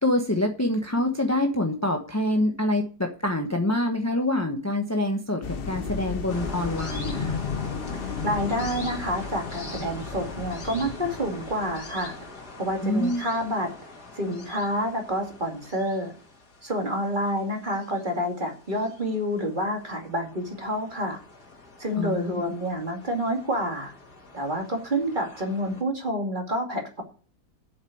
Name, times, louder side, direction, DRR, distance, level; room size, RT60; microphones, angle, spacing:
voice 1, 0.0-7.4 12.8-13.2 22.0-22.4, left 1 dB, 10° left, 3 dB, 1.0 m, -26 dB
sound 1, 5.4-12.3, left 6 dB, 50° left, 0.7 m, -34 dB
sound 2, 6.3-25.8, left 3 dB, 75° left, 2.9 m, -43 dB
voice 2, 8.2-12.1 12.6-13.7 14.1-16.1 16.6-21.2 21.8-23.9 24.3-27.0, equal, 30° right, 2 dB, 2.6 m, -28 dB
8.2 x 7.5 x 7.8 m, 0.39 s
omnidirectional pair, 1.7 m